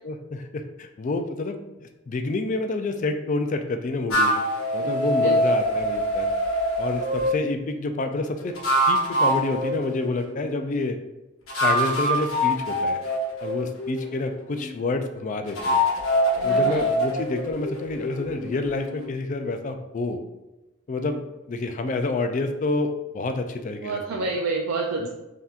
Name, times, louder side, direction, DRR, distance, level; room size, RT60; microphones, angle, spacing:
voice 1, 0.0-4.4 4.7-6.3 6.8-8.6 8.9-11.0 11.6-13.0 13.4-15.8 16.4-20.2 20.9-21.2 21.5-24.0 25.0-25.1, left 2 dB, 35° left, 7 dB, 0.3 m, -28 dB
sound 1, 4.1-7.4 8.4-10.5 11.5-14.7 15.5-19.1, equal, 75° left, 1.0 m, -24 dB
voice 2, 4.8-5.5 14.0-14.1 16.4-16.9 23.8-25.1, right 3 dB, 75° right, -1 dB, 0.4 m, -29 dB
5.5 x 2.8 x 2.4 m, 1.0 s
head